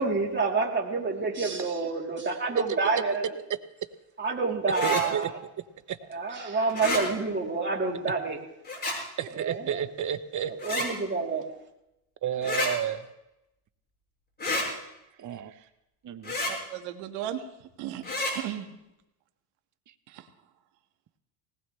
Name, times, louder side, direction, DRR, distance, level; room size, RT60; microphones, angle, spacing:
voice 1, 0.0-3.3 4.2-5.3 6.1-8.4 9.4-9.8 10.6-11.4, right 4 dB, 20° right, -1 dB, 3.2 m, -28 dB
sound 1, 4.7-5.0 6.7-7.0 8.7-9.0 10.6-10.9 12.4-12.7 14.4-14.7 16.2-16.5 18.0-18.3, left 2 dB, 20° left, 6.7 m, -29 dB
voice 2, 4.8-5.3 5.9-6.0 9.2-10.8 12.2-13.1 15.2-15.5 16.0-16.4, right 9 dB, 40° right, 13 dB, 0.9 m, -31 dB
voice 3, 12.4-12.7 15.5-15.7 16.5-17.4 17.8-18.0 18.3-18.7 20.1-20.3, right 12 dB, 80° right, 5 dB, 1.8 m, -36 dB
19.5 x 19.0 x 3.3 m, 0.89 s
supercardioid pair, 110°, 48 cm